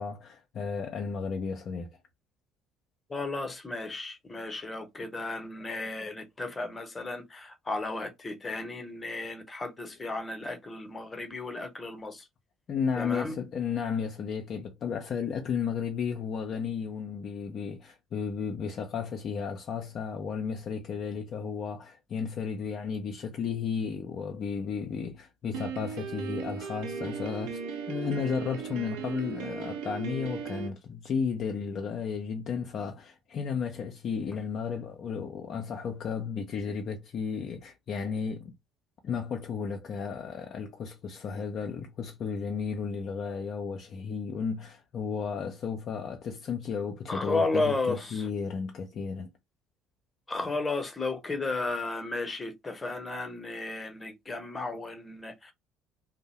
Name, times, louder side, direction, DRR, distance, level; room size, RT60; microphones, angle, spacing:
voice 1, 0.0-1.9 12.7-27.6 27.9-38.5 39.0-49.3, left 6 dB, 45° left, 0.4 m, -33 dB
voice 2, 3.1-12.2 13.0-13.4 47.1-48.3 50.3-55.5, left 3 dB, 20° left, 0.8 m, -33 dB
Piano, 25.5-30.7, right 7 dB, 60° right, 0.4 m, -37 dB
2.6 x 2.0 x 2.8 m
figure-of-eight pair, 55°, 0 cm